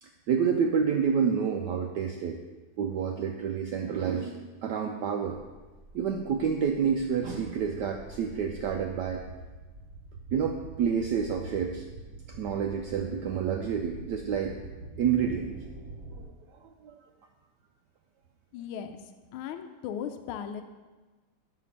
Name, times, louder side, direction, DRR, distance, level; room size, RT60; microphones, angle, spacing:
voice 1, 0.0-2.4 2.8-5.4 5.9-9.2 10.3-11.8 12.3-14.6 15.0-15.6 16.1-16.3 16.6-16.9, right 7 dB, 85° right, 4 dB, 0.9 m, -29 dB
sound 1, 5.5-16.3, right 1 dB, 55° right, 1.0 m, -45 dB
voice 2, 18.5-19.0 19.3-20.6, left 8 dB, 80° left, 7 dB, 1.4 m, -37 dB
6.0 x 5.9 x 7.1 m, 1.3 s
omnidirectional pair, 2.4 m